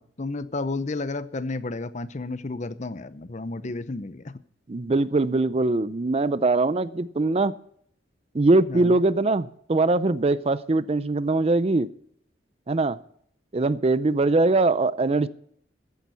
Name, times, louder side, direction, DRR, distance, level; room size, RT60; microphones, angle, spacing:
voice 1, 0.0-4.4 8.7-8.9, left 3 dB, 40° left, 14 dB, 0.7 m, -32 dB
voice 2, 4.7-7.5 8.3-11.9 12.7-13.0 13.5-15.3, right 2 dB, 30° right, 16 dB, 0.5 m, -22 dB
14.5 x 10.5 x 5.5 m, 0.65 s
head